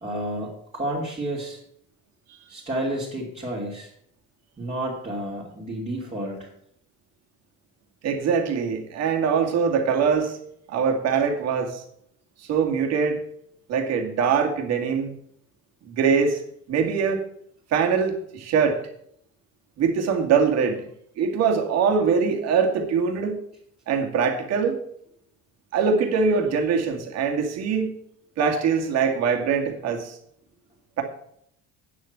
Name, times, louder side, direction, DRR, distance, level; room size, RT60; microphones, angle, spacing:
voice 1, 0.0-1.6 2.5-3.9 4.6-6.5, right 1 dB, 20° right, -6 dB, 2.8 m, -30 dB
voice 2, 8.0-10.4 10.7-11.8 12.5-13.2 13.7-15.1 15.9-16.4 16.7-17.2 17.7-18.8 19.8-20.8 21.2-23.4 23.9-24.8 25.7-27.9 28.4-30.2, right 6 dB, 55° right, 3 dB, 2.3 m, -23 dB
9.4 x 7.3 x 8.0 m, 0.70 s
cardioid pair, 160°, 31 cm